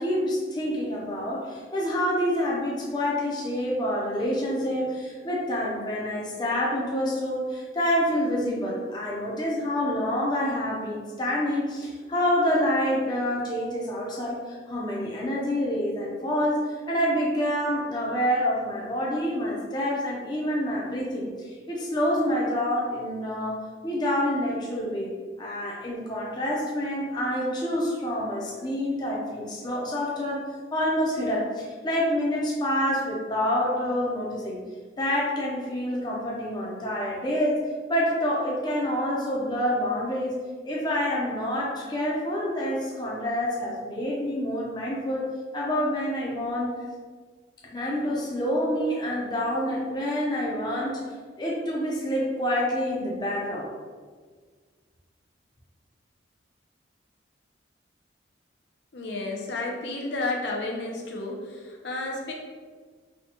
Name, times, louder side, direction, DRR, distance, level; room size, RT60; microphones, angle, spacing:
voice 1, 0.0-25.1 25.4-30.4 30.7-34.6 35.0-37.6 37.9-40.3 40.6-46.7 47.7-51.0 51.4-53.7, equal, 20° left, -4 dB, 0.5 m, -27 dB
voice 2, 58.9-62.3, left 2 dB, 65° left, 0 dB, 0.6 m, -31 dB
4.1 x 2.2 x 2.7 m, 1.5 s
head